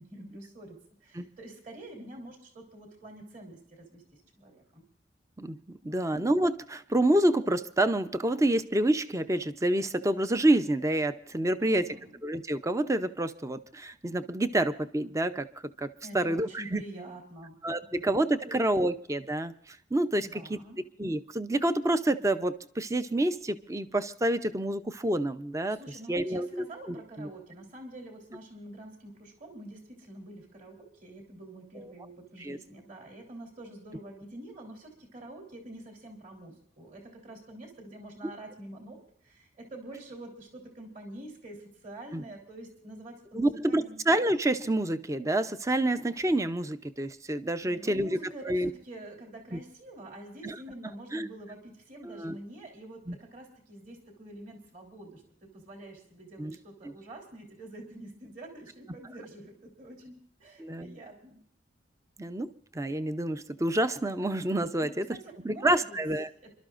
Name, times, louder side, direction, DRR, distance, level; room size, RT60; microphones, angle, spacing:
voice 1, 0.0-4.8 5.8-6.1 11.6-12.2 16.0-17.5 17.8-18.0 18.4-18.5 20.2-20.8 25.7-44.0 47.6-61.4 64.8-66.0 66.4-66.5, right 1 dB, 45° right, 0 dB, 3.5 m, -47 dB
voice 2, 5.8-11.9 12.2-15.5 15.8-16.8 17.6-20.6 21.0-25.8 26.1-27.3 31.7-31.9 32.4-32.6 42.1-42.2 43.3-48.2 48.4-48.7 49.5-49.6 50.4-50.6 51.1-51.3 52.0-52.4 53.1-53.2 56.4-56.6 60.6-61.0 62.2-65.2 65.4-66.3, right 1 dB, 15° right, 11 dB, 0.6 m, -28 dB
29.5 x 12.5 x 2.5 m, 0.63 s
head